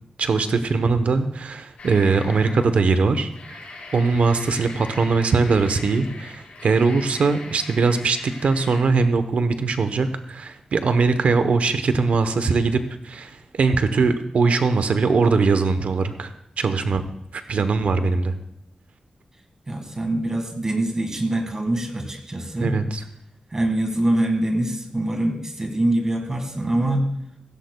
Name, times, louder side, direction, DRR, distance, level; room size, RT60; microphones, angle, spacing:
voice 1, 0.2-3.6 3.9-16.3 16.6-17.0 17.3-18.3 22.6-23.0, right 4 dB, 75° right, 9 dB, 0.8 m, -21 dB
sound 1, 1.8-2.8 3.2-8.8, left 2 dB, 80° left, 4.4 m, -40 dB
voice 2, 19.7-22.8 23.5-27.1, right 1 dB, 25° right, 4 dB, 1.7 m, -24 dB
16.0 x 16.0 x 2.2 m, 0.75 s
wide cardioid pair, 140°, 2 cm